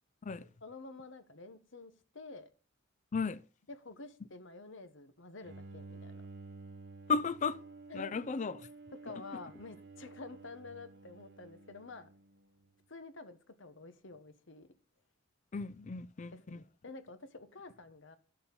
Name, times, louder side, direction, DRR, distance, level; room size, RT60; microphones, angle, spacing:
voice 1, 0.6-2.5 3.7-6.1 7.9-8.1 9.0-12.1 12.9-14.7 16.3-18.2, left 3 dB, 65° left, 1.3 m, -49 dB
Bowed string instrument, 5.4-12.7, right 3 dB, 60° right, 1.1 m, -52 dB
voice 2, 7.1-7.6 7.9-8.7 15.5-16.6, left 5 dB, 35° left, 0.4 m, -34 dB
9.1 x 7.0 x 5.4 m
head